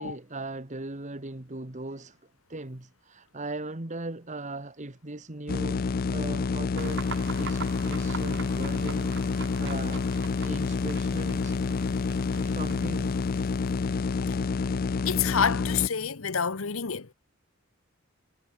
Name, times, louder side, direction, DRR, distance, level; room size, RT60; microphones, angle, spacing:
voice 1, 0.0-2.2 2.5-5.8 6.1-10.1 10.3-11.6 12.4-13.2, right 2 dB, 35° right, 1.7 m, -39 dB
sound 1, 5.5-15.9, left 4 dB, 45° left, 0.4 m, -28 dB
sound 2, 6.8-14.2, right 5 dB, 60° right, 4.2 m, -44 dB
voice 2, 15.1-17.1, left 7 dB, 70° left, 1.0 m, -28 dB
head